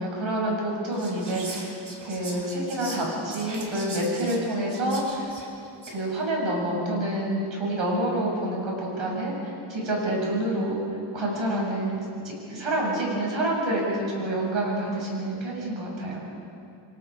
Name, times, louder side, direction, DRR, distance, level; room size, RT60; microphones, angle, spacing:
voice 1, 0.0-1.7 2.1-5.3 5.9-10.8 11.1-16.2, right 1 dB, 70° right, -2 dB, 7.1 m, -28 dB
Whispering, 0.9-6.1, right 2 dB, 40° right, 4.0 m, -41 dB
29.0 x 23.5 x 5.0 m, 2.5 s
wide cardioid pair, 140°, 48 cm